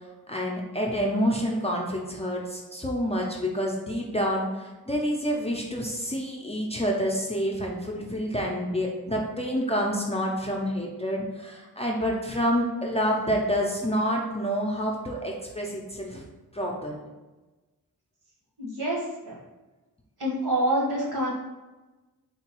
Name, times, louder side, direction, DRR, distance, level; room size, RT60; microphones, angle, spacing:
voice 1, 0.3-16.2 16.5-17.1, equal, 15° left, -2 dB, 0.4 m, -28 dB
voice 2, 18.6-19.4 20.2-21.3, right 1 dB, 70° right, -3 dB, 1.1 m, -27 dB
3.9 x 2.2 x 2.9 m, 1.1 s
wide cardioid pair, 100°, 40 cm